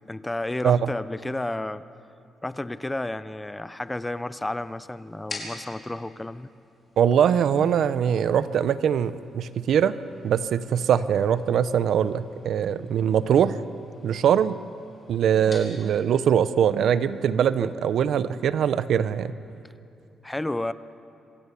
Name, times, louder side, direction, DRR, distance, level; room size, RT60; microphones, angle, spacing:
voice 1, 0.1-1.8 2.4-6.5 20.2-20.7, left 2 dB, 10° left, 15 dB, 0.6 m, -31 dB
sound 1, 3.8-18.1, left 2 dB, 35° left, 4.8 m, -48 dB
voice 2, 7.0-9.9 10.2-13.6 14.0-14.6 15.1-19.3, right 8 dB, 70° right, 14 dB, 0.7 m, -22 dB
26.0 x 15.5 x 7.0 m, 2.5 s
cardioid pair, 105°, 0 cm